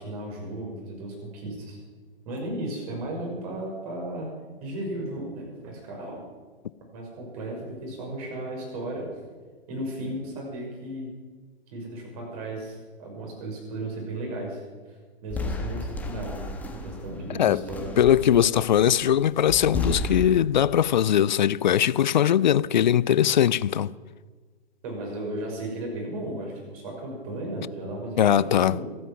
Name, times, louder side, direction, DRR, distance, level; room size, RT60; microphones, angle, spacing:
voice 1, 0.0-1.8 2.2-4.3 4.6-6.2 6.9-9.1 9.7-11.1 11.7-14.6 15.2-17.9 24.8-28.9, right 1 dB, 35° right, 5.9 m, -35 dB
sound 1, 15.3-20.3, left 2 dB, 5° left, 1.5 m, -33 dB
voice 2, 18.0-23.9 28.2-28.7, left 10 dB, 50° left, 0.5 m, -20 dB
26.0 x 9.1 x 6.1 m
figure-of-eight pair, 115°, 30 cm